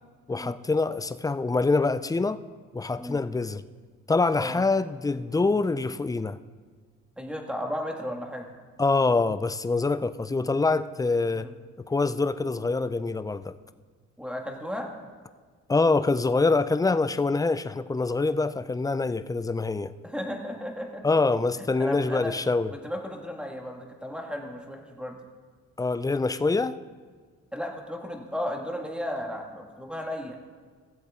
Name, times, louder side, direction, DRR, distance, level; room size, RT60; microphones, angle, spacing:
voice 1, 0.3-2.4 2.7-3.6 4.1-6.4 8.8-11.5 11.9-13.5 15.7-19.9 21.0-22.7 25.8-26.8, left 3 dB, 10° left, 14 dB, 0.3 m, -25 dB
voice 2, 7.2-8.5 11.3-11.5 14.2-14.9 20.0-21.0 21.6-22.3 22.7-25.2 27.5-30.4, left 1 dB, 5° right, 1 dB, 1.7 m, -34 dB
16.5 x 7.8 x 3.7 m, 1.6 s
cardioid pair, 90°, 30 cm